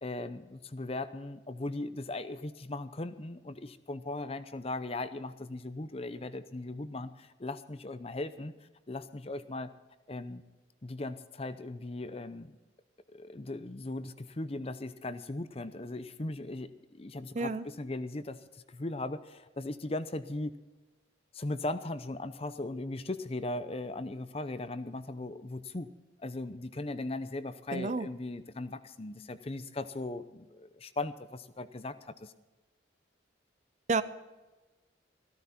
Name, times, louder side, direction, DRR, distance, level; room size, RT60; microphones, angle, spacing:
voice 1, 0.0-8.5 8.9-9.7 10.1-10.4 10.8-12.6 13.1-18.4 18.7-20.5 21.3-25.9 26.2-32.3, left 2 dB, 30° left, 12 dB, 0.6 m, -38 dB
voice 2, 17.3-17.6 27.7-28.1 33.9-34.0, right 3 dB, 35° right, 14 dB, 0.5 m, -30 dB
15.0 x 13.5 x 4.3 m, 1.2 s
head